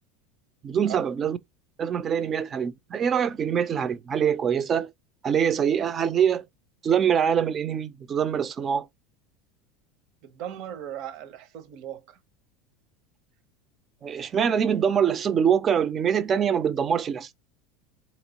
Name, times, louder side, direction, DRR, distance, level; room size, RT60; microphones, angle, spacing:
voice 1, 0.6-1.4 1.8-4.9 5.2-6.4 6.8-8.9 14.0-17.3, right 8 dB, 25° right, 0.4 m, -24 dB
voice 2, 10.2-12.2, right 11 dB, 55° right, 0.8 m, -37 dB
4.1 x 3.0 x 2.8 m
supercardioid pair, 145°, 0 cm